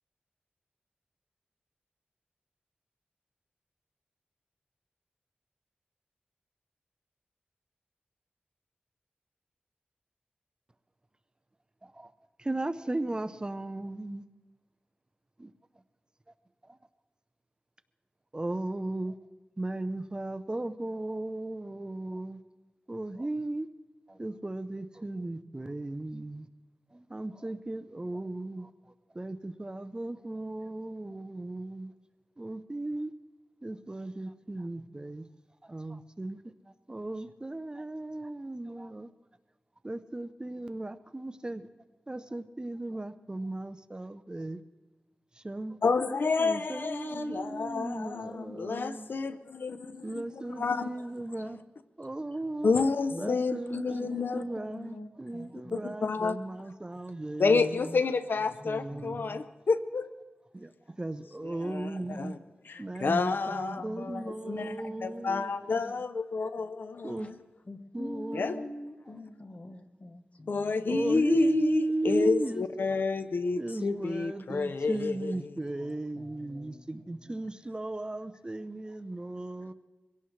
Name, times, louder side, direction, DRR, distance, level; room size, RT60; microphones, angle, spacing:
voice 1, 12.4-14.2 15.4-15.5 18.3-19.2 19.6-22.4 22.9-23.7 24.1-26.5 26.9-28.7 29.1-31.9 32.4-33.1 33.6-35.3 35.6-36.4 36.9-39.1 39.8-41.7 42.1-44.6 45.4-45.8 46.4-49.1 50.0-51.6 52.0-52.7 53.2-58.0 58.6-59.4 60.5-62.4 62.8-66.0 67.0-67.3 67.9-68.7 69.1-69.2 70.9-72.7 73.6-79.7, right 2 dB, 25° right, 0.6 m, -36 dB
voice 2, 45.8-50.2 50.6-50.9 52.6-54.4 56.0-56.4 57.4-60.1 61.4-61.9 62.2-62.4 62.7-64.8 65.0-67.3 68.3-68.6 70.5-75.5, left 4 dB, 75° left, 0.6 m, -29 dB
voice 3, 53.1-53.5 53.9-55.9 58.6-59.2 62.0-62.4 63.2-63.4 63.8-66.0 67.7-71.1 75.8-76.9 77.3-77.4, left 2 dB, 40° left, 1.1 m, -45 dB
23.5 x 17.0 x 3.2 m
wide cardioid pair, 85°, 4 cm